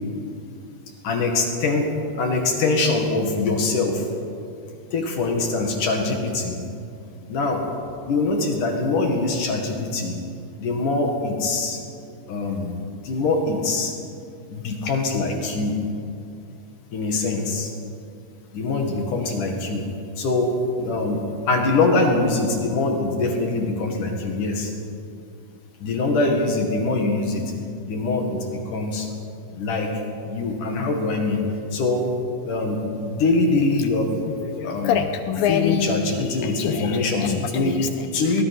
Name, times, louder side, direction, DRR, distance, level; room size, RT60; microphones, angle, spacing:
voice 1, 1.0-4.1 4.9-6.6 7.3-7.7 8.1-10.2 10.6-11.8 12.3-12.8 13.0-13.9 14.5-15.8 16.9-17.7 18.5-19.9 20.2-24.7 25.8-27.5 27.8-29.1 29.5-29.9 30.3-31.4 31.7-32.1 32.4-34.1 34.6-34.9 35.5-37.8 38.1-38.4, left 3 dB, 55° left, 2 dB, 3.0 m, -23 dB
voice 2, 34.2-38.4, left 8 dB, 80° left, 8 dB, 2.1 m, -27 dB
23.0 x 19.5 x 6.0 m, 2.5 s
omnidirectional pair, 5.1 m